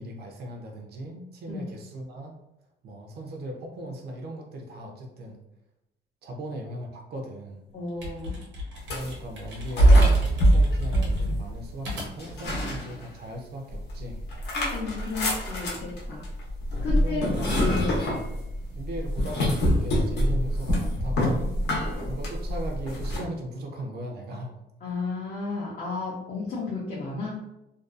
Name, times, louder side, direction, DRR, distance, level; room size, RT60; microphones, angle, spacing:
voice 1, 0.0-2.3 2.8-5.4 6.2-7.6 8.9-14.2 16.8-17.5 18.3-21.5 22.0-24.6, right 1 dB, 60° right, 2 dB, 0.5 m, -38 dB
voice 2, 7.7-8.4 12.5-12.6 14.5-16.3 16.8-18.1 24.8-27.4, left 3 dB, 40° left, -6 dB, 0.5 m, -33 dB
sound 1, 7.7-12.4, left 2 dB, 90° right, 0.9 m, -37 dB
sound 2, 8.8-9.2 9.8-11.7 12.2-13.3 13.7-23.2, equal, 65° left, 0.8 m, -24 dB
2.5 x 2.2 x 2.3 m, 0.89 s
cardioid pair, 160°, 19 cm